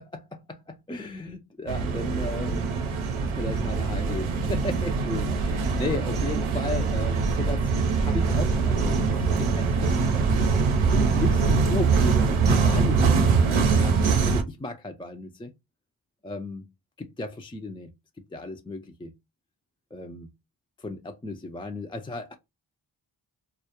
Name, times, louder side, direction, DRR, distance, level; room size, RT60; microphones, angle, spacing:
voice 1, 0.1-10.5 10.9-14.0 14.2-15.5 16.2-16.7 17.0-19.1 19.9-20.3 20.8-22.3, left 2 dB, 10° left, 0.3 m, -35 dB
sound 1, 1.7-14.4, right 4 dB, 80° right, 0.6 m, -23 dB
2.2 x 2.1 x 2.8 m
cardioid pair, 40°, 48 cm